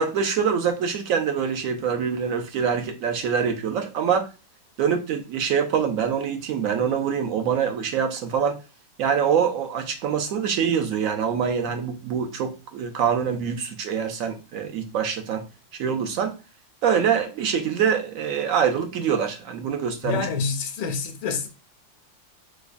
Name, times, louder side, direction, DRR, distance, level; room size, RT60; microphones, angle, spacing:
voice 1, 0.0-4.3 4.8-8.6 9.0-15.5 15.7-16.3 16.8-20.3, right 7 dB, 70° right, 0.8 m, -24 dB
voice 2, 20.0-21.5, left 5 dB, 85° left, 1.2 m, -27 dB
4.6 x 2.2 x 2.5 m
omnidirectional pair, 1.8 m